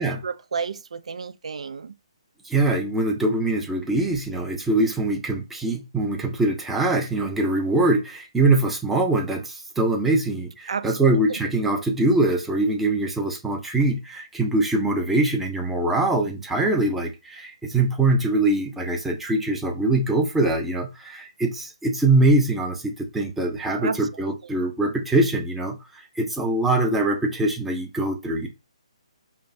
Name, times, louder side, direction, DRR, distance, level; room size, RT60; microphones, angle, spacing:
voice 1, 0.0-1.9 10.7-10.9 23.8-24.0, right 5 dB, 70° right, 0.4 m, -31 dB
voice 2, 2.4-28.5, right 2 dB, 5° right, 0.6 m, -23 dB
5.2 x 2.0 x 2.6 m
figure-of-eight pair, 145°, 4 cm